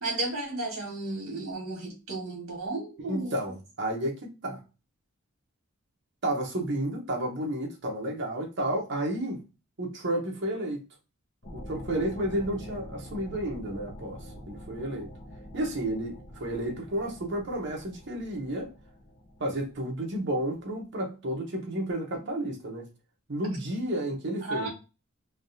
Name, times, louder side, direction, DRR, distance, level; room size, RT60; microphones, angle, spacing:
voice 1, 0.0-3.5 24.5-24.7, right 2 dB, 70° right, 1.6 m, -33 dB
voice 2, 3.1-4.6 6.2-9.4 9.8-10.8 11.5-15.1 15.5-18.7 19.4-22.9 23.3-24.7, right 1 dB, 55° right, 0.9 m, -31 dB
sound 1, 11.4-20.6, equal, 35° left, 0.6 m, -45 dB
3.5 x 2.3 x 2.6 m
head